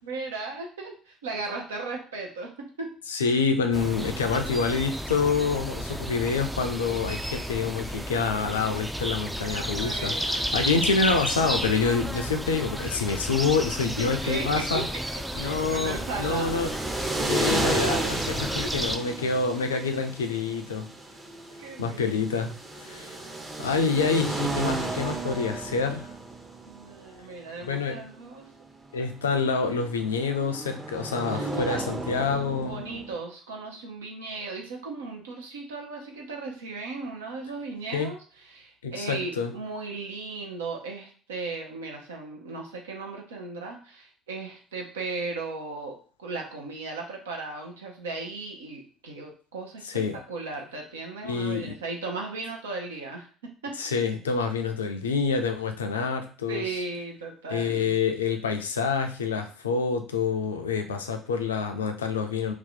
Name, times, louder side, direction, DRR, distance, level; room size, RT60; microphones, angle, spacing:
voice 1, 0.0-2.9 9.8-10.5 14.0-14.9 15.3-16.7 18.6-18.7 21.6-22.1 26.7-28.5 31.3-31.8 32.6-53.8 56.5-57.9, right 3 dB, 75° right, 1 dB, 0.6 m, -36 dB
voice 2, 3.1-14.9 15.3-16.8 17.3-20.9 21.8-26.1 27.6-28.0 28.9-32.8 37.9-38.1 38.8-39.5 49.8-50.2 51.2-51.7 53.8-56.7 57.5-62.5, left 5 dB, 75° left, 6 dB, 0.4 m, -27 dB
sound 1, 3.7-19.0, equal, 5° right, 0.3 m, -32 dB
sound 2, 15.3-33.2, right 2 dB, 20° right, 0.7 m, -33 dB
2.8 x 2.2 x 3.9 m, 0.40 s
figure-of-eight pair, 55°, 0 cm